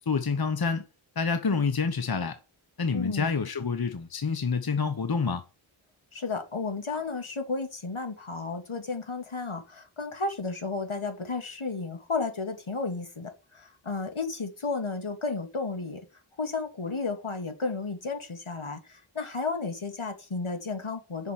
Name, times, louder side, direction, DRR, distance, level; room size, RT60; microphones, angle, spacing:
voice 1, 0.1-0.8 1.2-2.4 2.8-5.4, left 5 dB, 45° left, 0.9 m, -27 dB
voice 2, 2.9-3.3 6.1-16.0 16.4-21.3, left 4 dB, 75° left, 2.0 m, -33 dB
7.1 x 5.8 x 7.4 m
wide cardioid pair, 45°, 49 cm